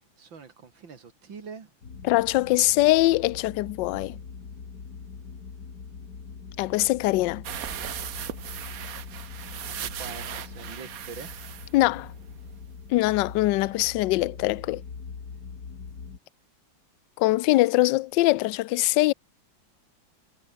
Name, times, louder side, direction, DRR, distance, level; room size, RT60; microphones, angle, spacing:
voice 1, 0.2-1.7 9.7-11.3 13.1-13.2 13.5-13.9, right 5 dB, 85° right, 3.4 m, -44 dB
sound 1, 1.8-16.2, left 5 dB, 55° left, 2.7 m, -42 dB
voice 2, 2.0-4.2 6.6-7.4 11.7-12.1 12.9-14.8 17.2-19.1, left 18 dB, 75° left, 1.2 m, -22 dB
sound 2, 7.4-12.7 13.0-13.1 13.4-13.5, right 10 dB, 55° right, 1.2 m, -38 dB
omnidirectional pair, 2.0 m